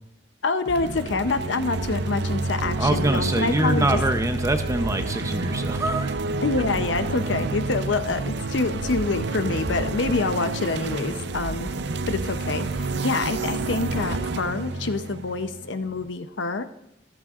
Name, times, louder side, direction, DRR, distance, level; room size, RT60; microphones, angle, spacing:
voice 1, 0.4-4.0 6.4-11.7 12.1-16.6, left 3 dB, 75° left, 10 dB, 0.7 m, -26 dB
sound 1, 0.6-16.1, right 3 dB, 65° right, 0.6 m, -29 dB
voice 2, 2.8-6.1, right 1 dB, 15° right, 7 dB, 0.7 m, -24 dB
13.5 x 13.0 x 2.5 m, 0.88 s
head